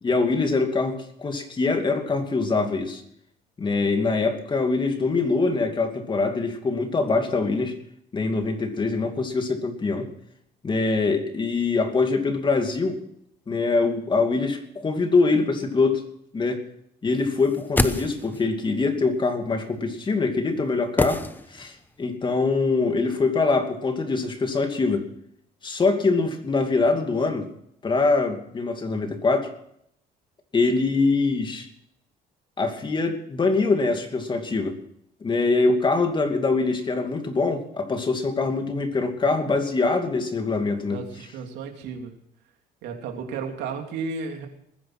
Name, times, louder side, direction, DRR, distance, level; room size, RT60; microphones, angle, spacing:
voice 1, 0.0-3.0 3.6-7.7 8.1-10.1 10.6-13.0 13.5-16.0 16.3-16.6 17.0-21.2 21.5-25.0 25.6-27.5 27.8-29.5 30.5-31.7 32.6-34.8 35.2-41.0, left 3 dB, 30° left, 5 dB, 2.5 m, -23 dB
sound 1, 17.4-18.6 21.0-21.9 22.1-22.2, left 2 dB, 10° left, 1.0 m, -27 dB
voice 2, 40.8-42.1 42.8-44.5, right 5 dB, 85° right, 3 dB, 3.2 m, -33 dB
20.0 x 10.0 x 6.1 m, 0.71 s
cardioid pair, 110°, 17 cm